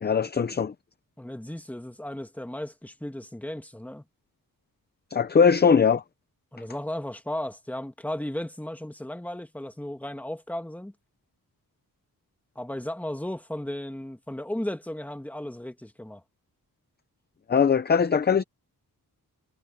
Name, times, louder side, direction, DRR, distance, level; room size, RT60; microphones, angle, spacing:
voice 1, 0.0-0.7 5.1-6.0 17.5-18.4, left 6 dB, 30° left, 0.6 m, -20 dB
voice 2, 1.2-4.0 6.5-10.9 12.5-16.2, left 1 dB, 5° left, 1.5 m, -35 dB
wide cardioid pair, 165°, 35 cm